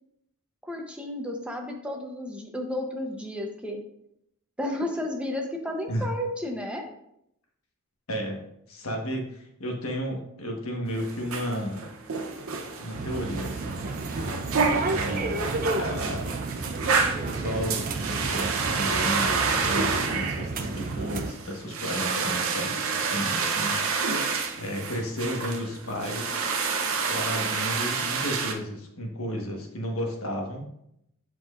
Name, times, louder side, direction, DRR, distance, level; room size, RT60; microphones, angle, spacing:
voice 1, 0.6-3.8 4.6-6.8, left 1 dB, 5° right, 1 dB, 0.8 m, -32 dB
voice 2, 8.1-11.8 12.8-13.8 14.9-16.3 17.3-24.1 24.6-26.5 27.1-30.7, equal, 75° left, 1 dB, 1.3 m, -33 dB
sound 1, 10.9-28.5, right 4 dB, 70° right, 0.8 m, -29 dB
sound 2, 12.9-21.3, right 3 dB, 40° right, 0.4 m, -32 dB
7.6 x 5.9 x 2.5 m, 0.77 s
head